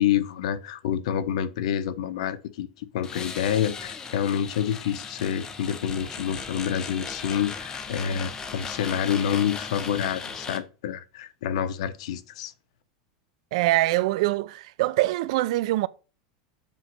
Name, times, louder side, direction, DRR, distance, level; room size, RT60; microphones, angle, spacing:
voice 1, 0.0-12.5, left 9 dB, 75° left, 1.0 m, -28 dB
sound 1, 3.0-10.6, left 5 dB, 20° left, 1.1 m, -37 dB
voice 2, 13.5-15.9, right 17 dB, 65° right, 0.6 m, -24 dB
7.4 x 4.2 x 6.7 m
supercardioid pair, 150°, 4 cm